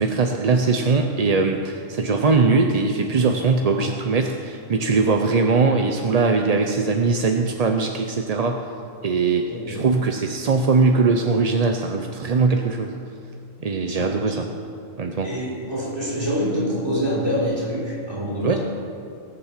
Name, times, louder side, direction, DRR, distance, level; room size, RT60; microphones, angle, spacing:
voice 1, 0.0-8.6 9.0-13.0 13.6-14.5 15.0-15.3 18.4-18.6, right 4 dB, 40° right, 4 dB, 0.6 m, -21 dB
voice 2, 9.5-9.8 13.9-14.2 15.2-18.6, equal, 20° right, -5 dB, 4.0 m, -26 dB
18.0 x 7.2 x 7.3 m, 2.5 s
omnidirectional pair, 1.3 m